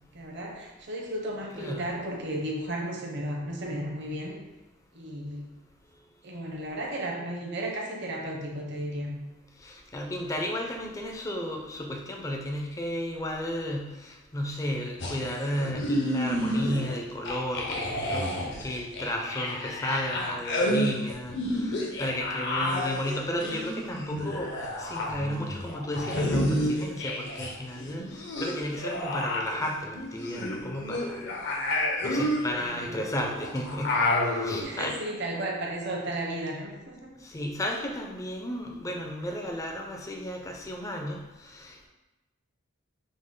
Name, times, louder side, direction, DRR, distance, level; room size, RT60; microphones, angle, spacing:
voice 1, 0.1-4.3 4.9-5.4 6.2-9.1 32.6-33.0 34.6-37.1, right 1 dB, 55° right, 0 dB, 0.8 m, -34 dB
voice 2, 9.6-31.3 32.0-34.0 34.3-34.9 37.2-41.9, left 1 dB, 15° left, 1 dB, 0.4 m, -33 dB
sound 1, 15.0-17.0 17.3-27.5 27.8-34.6, left 1 dB, 55° left, 0.7 m, -30 dB
5.2 x 2.1 x 3.7 m, 1.1 s
head